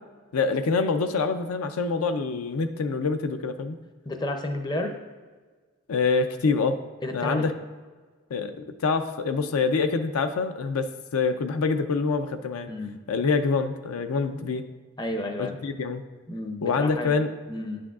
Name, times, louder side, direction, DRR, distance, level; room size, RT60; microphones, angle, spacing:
voice 1, 0.3-3.8 5.9-6.8 7.1-7.5 8.3-12.7 13.1-14.6 15.4-16.0 16.6-17.3, left 4 dB, 75° left, 8 dB, 0.4 m, -26 dB
voice 2, 4.1-5.0 7.0-7.5 12.7-13.0 15.0-15.5 16.3-17.2 17.5-17.8, left 1 dB, 20° left, 5 dB, 0.5 m, -31 dB
10.0 x 6.1 x 2.4 m, 1.4 s
head